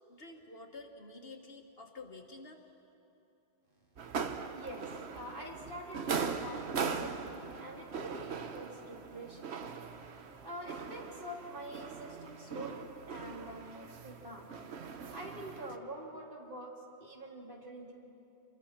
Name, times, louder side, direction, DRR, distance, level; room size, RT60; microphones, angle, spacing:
voice 1, 0.1-2.6, left 3 dB, 65° left, 3 dB, 1.8 m, -49 dB
sound 1, 4.0-15.8, right 5 dB, 80° right, 1.3 m, -40 dB
voice 2, 4.5-9.5 9.9-14.5 15.1-17.9, right 1 dB, 55° right, -2 dB, 3.2 m, -46 dB
Singing / Musical instrument, 6.5-16.6 16.9-17.0, equal, 5° right, 2.2 m, -63 dB
27.0 x 22.5 x 5.9 m, 2.9 s
omnidirectional pair, 1.1 m